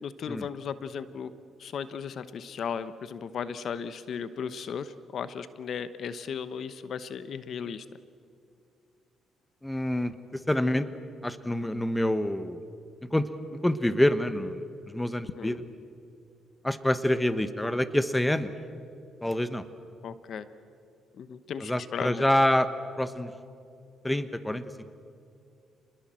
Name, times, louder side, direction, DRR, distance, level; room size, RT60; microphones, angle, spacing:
voice 1, 0.0-1.3 1.6-7.9 15.3-15.6 20.0-20.5 21.2-22.2, left 7 dB, 60° left, 13 dB, 1.0 m, -36 dB
voice 2, 9.6-10.9 11.2-12.6 13.1-13.3 13.6-15.6 16.6-18.5 19.2-19.6 21.6-22.7 23.0-23.3 24.0-24.8, left 1 dB, 10° left, 12 dB, 1.3 m, -27 dB
29.0 x 20.5 x 7.7 m, 2.5 s
cardioid pair, 90°, 0 cm